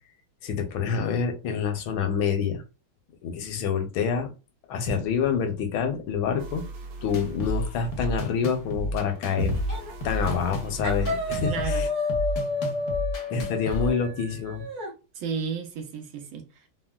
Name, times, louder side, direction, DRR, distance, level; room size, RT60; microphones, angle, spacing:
voice 1, 0.4-2.6 3.2-4.3 4.7-6.7 7.0-9.6 10.0-11.9 13.3-14.7, left 6 dB, 80° left, 1.5 m, -27 dB
sound 1, 6.4-11.7, right 3 dB, 65° right, 1.3 m, -39 dB
sound 2, 7.1-13.9, equal, 60° left, 0.8 m, -32 dB
sound 3, 9.7-9.9 10.2-10.6 10.8-14.9, left 3 dB, 40° right, 0.6 m, -31 dB
voice 2, 11.5-11.9 15.1-16.7, right 6 dB, 85° right, 1.6 m, -33 dB
4.1 x 2.0 x 2.2 m
omnidirectional pair, 2.2 m